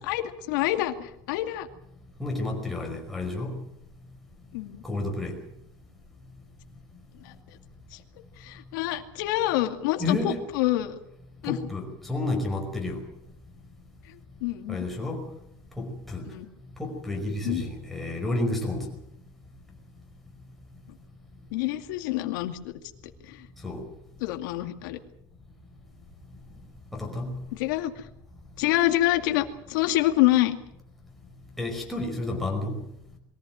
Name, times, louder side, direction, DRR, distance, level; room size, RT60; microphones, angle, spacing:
voice 1, 0.1-1.7 4.5-4.8 7.2-7.3 7.9-8.0 8.4-11.0 11.4-11.6 14.1-14.8 16.3-16.5 17.4-17.6 21.5-22.7 23.3-23.5 24.2-25.0 27.5-28.0 28.6-30.6, left 15 dB, 75° left, 6 dB, 2.3 m, -27 dB
voice 2, 2.2-3.6 4.8-5.4 10.0-10.4 11.5-13.0 14.7-15.2 15.8-16.2 16.8-18.9 23.6-23.8 26.9-27.3 31.6-32.8, left 2 dB, ahead, 0 dB, 5.2 m, -30 dB
23.0 x 15.0 x 9.4 m, 0.78 s
cardioid pair, 165°, 11 cm